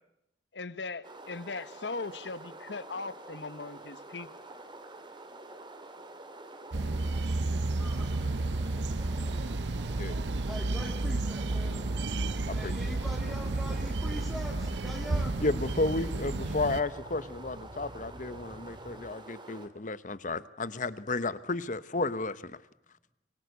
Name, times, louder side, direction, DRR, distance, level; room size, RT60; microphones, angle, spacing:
voice 1, 0.5-4.3, left 3 dB, 80° left, 14 dB, 1.3 m, -39 dB
sound 1, 1.0-19.7, right 2 dB, 25° right, 2.4 m, -48 dB
sound 2, 6.7-16.8, right 2 dB, 80° right, 0.9 m, -32 dB
sound 3, 9.1-19.1, equal, 50° right, 5.4 m, -47 dB
voice 2, 10.5-11.8 12.5-15.4, equal, ahead, -1 dB, 2.4 m, -43 dB
voice 3, 15.4-22.5, left 2 dB, 45° left, 15 dB, 1.1 m, -32 dB
24.0 x 24.0 x 8.3 m, 0.83 s
head